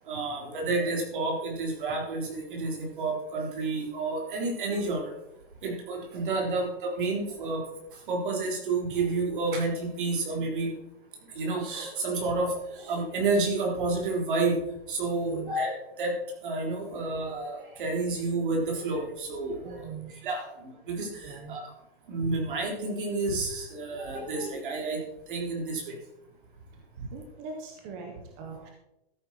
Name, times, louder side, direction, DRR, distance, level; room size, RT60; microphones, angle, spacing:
voice 1, 0.1-5.1 5.6-7.6 8.1-10.7 11.3-14.6 14.9-15.7 16.0-16.2 16.4-19.9 20.2-21.6 22.1-25.0 25.3-26.0, right 3 dB, 55° right, 0 dB, 3.8 m, -30 dB
voice 2, 15.2-15.5 19.6-20.1 21.2-21.6 27.1-28.7, right 5 dB, 10° right, 2 dB, 0.5 m, -42 dB
13.5 x 8.1 x 4.5 m, 0.88 s
hypercardioid pair, 180°, 31 cm